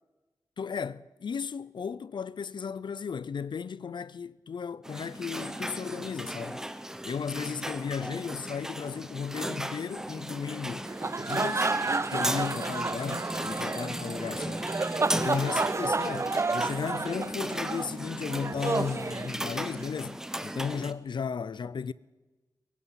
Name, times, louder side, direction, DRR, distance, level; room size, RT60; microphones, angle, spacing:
voice 1, 0.6-6.6 7.0-10.9 11.2-11.7 12.1-14.6 15.1-21.9, left 6 dB, 85° left, 0.5 m, -35 dB
sound 1, 4.8-20.9, right 1 dB, 5° right, 0.9 m, -36 dB
sound 2, 10.8-19.9, right 3 dB, 35° right, 0.5 m, -31 dB
22.0 x 11.0 x 5.7 m
wide cardioid pair, 70°, 8 cm